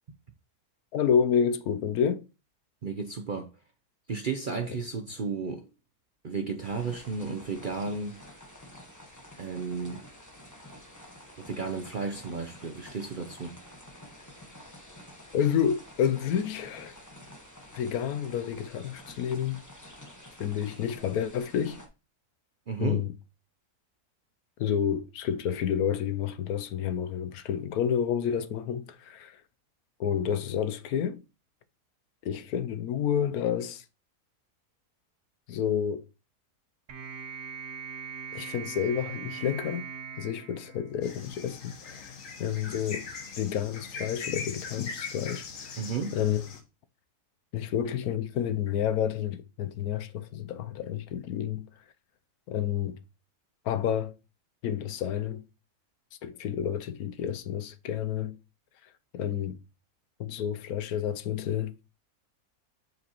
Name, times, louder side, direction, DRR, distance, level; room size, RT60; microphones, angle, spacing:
voice 1, 0.9-2.2 15.3-17.0 17.7-19.6 20.4-21.8 22.8-23.1 24.6-29.4 30.0-31.2 32.2-33.8 35.5-36.1 38.3-39.9 40.2-43.1 43.4-45.8 46.1-46.4 47.5-51.7 52.5-53.0 53.6-54.1 54.6-55.4 56.2-58.4 59.1-59.6 60.2-61.7, left 8 dB, 75° left, 1.1 m, -29 dB
voice 2, 2.8-3.5 4.1-5.7 6.2-8.2 9.4-10.1 11.4-13.6 22.7-23.1 45.8-46.2, right 5 dB, 50° right, 0.6 m, -33 dB
sound 1, 6.6-21.9, left 1 dB, 10° left, 1.2 m, -49 dB
sound 2, 36.9-41.4, right 6 dB, 70° right, 1.6 m, -41 dB
sound 3, 41.0-46.6, left 5 dB, 60° left, 1.5 m, -41 dB
7.4 x 6.1 x 2.9 m
omnidirectional pair, 1.6 m